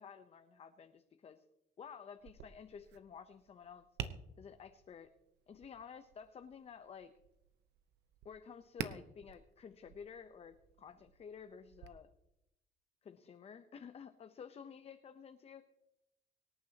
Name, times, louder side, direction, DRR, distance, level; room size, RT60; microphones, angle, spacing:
voice 1, 0.0-1.4 1.8-3.8 4.4-5.1 5.5-7.1 8.2-12.1 13.0-15.6, left 7 dB, 35° left, 8 dB, 0.8 m, -52 dB
Tap, 2.2-11.9, right 9 dB, 80° right, 1.0 m, -50 dB
24.5 x 9.4 x 2.9 m, 0.88 s
cardioid pair, 110°, 17 cm